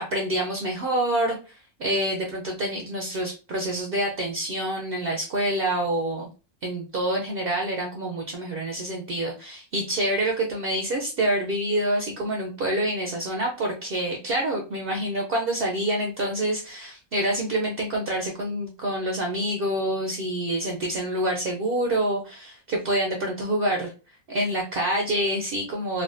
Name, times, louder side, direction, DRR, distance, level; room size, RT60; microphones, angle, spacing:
voice 1, 0.1-6.3 6.6-23.9 24.3-26.0, right 1 dB, 75° right, 1 dB, 0.5 m, -27 dB
3.5 x 2.1 x 2.5 m, 0.33 s
omnidirectional pair, 1.6 m